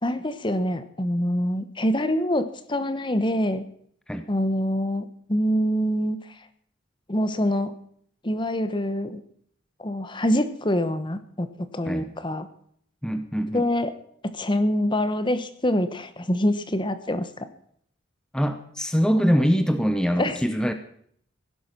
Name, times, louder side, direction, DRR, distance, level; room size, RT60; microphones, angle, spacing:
voice 1, 0.0-3.6 4.3-6.2 7.1-7.7 8.2-9.2 9.8-12.5 13.5-13.9 14.3-17.5 20.2-20.4, equal, 25° left, 11 dB, 1.0 m, -25 dB
voice 2, 13.0-13.6 18.3-20.7, equal, 5° left, 8 dB, 0.8 m, -23 dB
16.5 x 11.0 x 6.0 m, 0.65 s
head